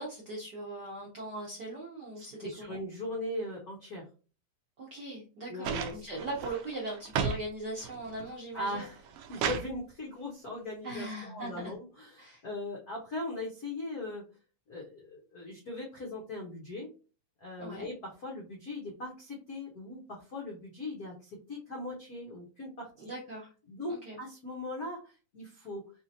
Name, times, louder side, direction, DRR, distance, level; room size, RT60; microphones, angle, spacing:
voice 1, 0.0-2.8 4.8-8.8 10.8-11.7 12.2-12.4 17.6-17.9 23.0-23.5 23.9-24.2, right 2 dB, 65° right, -4 dB, 1.0 m, -40 dB
voice 2, 2.2-4.1 5.5-6.0 8.2-14.2 14.7-16.9 17.4-23.1 23.7-25.8, left 2 dB, 85° left, -2 dB, 0.8 m, -40 dB
sound 1, 5.6-7.4 7.8-8.3 8.8-9.7 10.9-11.0, right 7 dB, 90° right, 1.3 m, -34 dB
4.8 x 2.8 x 2.7 m, 0.35 s
omnidirectional pair, 3.3 m